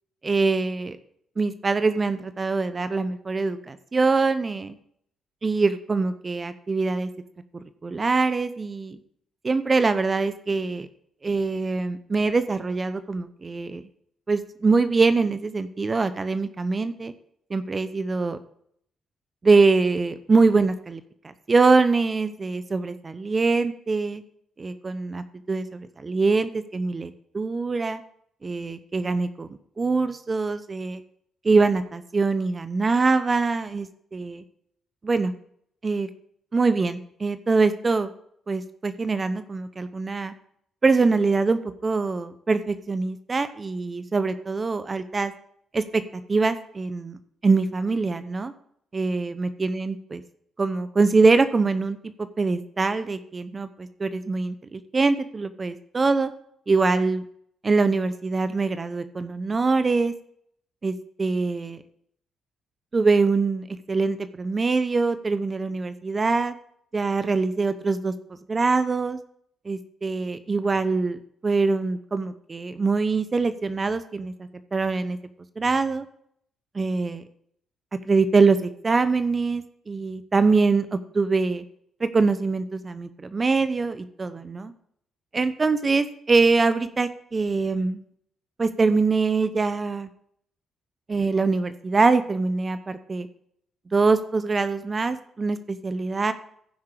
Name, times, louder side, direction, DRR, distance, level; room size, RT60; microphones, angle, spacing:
voice 1, 0.2-1.0 1.4-4.7 5.4-7.1 7.5-9.0 9.4-10.9 11.2-13.8 14.3-17.1 17.5-18.4 19.4-21.0 21.5-24.2 24.6-28.0 28.4-29.5 29.8-31.0 31.4-34.4 35.0-35.3 35.8-36.1 36.5-38.1 38.5-40.3 40.8-45.3 45.7-46.0 46.3-48.5 48.9-50.2 50.6-56.3 56.7-57.2 57.6-60.1 60.8-61.8 62.9-66.5 66.9-68.1 68.5-69.2 69.6-74.3 74.7-75.2 75.6-76.0 76.7-77.2 78.1-81.6 82.0-84.7 85.3-88.0 88.6-90.1 91.1-93.3 93.9-96.3, right 4 dB, 35° right, 12 dB, 0.8 m, -23 dB
14.5 x 5.7 x 4.8 m, 0.68 s
supercardioid pair, 60°, 0 cm